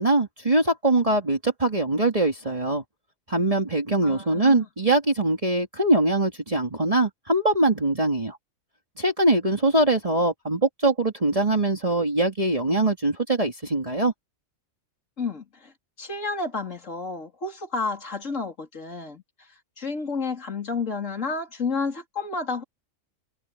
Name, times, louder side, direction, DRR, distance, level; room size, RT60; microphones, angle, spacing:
voice 1, 0.0-2.8 3.3-8.4 9.0-14.1, right 2 dB, 25° right, 2.3 m, -22 dB
voice 2, 4.0-4.7 15.2-15.7 16.0-19.5 19.8-22.6, left 4 dB, 70° left, 3.9 m, -31 dB
omnidirectional pair, 1.4 m